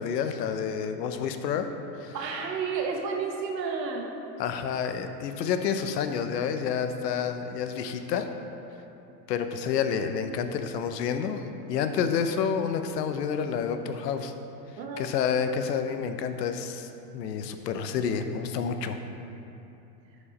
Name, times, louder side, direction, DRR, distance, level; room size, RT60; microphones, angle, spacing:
voice 1, 0.0-1.7 2.0-2.2 4.4-8.3 9.3-14.3 15.0-19.0, left 7 dB, 75° left, 8 dB, 0.8 m, -29 dB
voice 2, 2.1-4.1 14.8-15.1, right 5 dB, 85° right, 2 dB, 1.2 m, -31 dB
11.0 x 5.1 x 4.2 m, 2.9 s
hypercardioid pair, 100°, 49 cm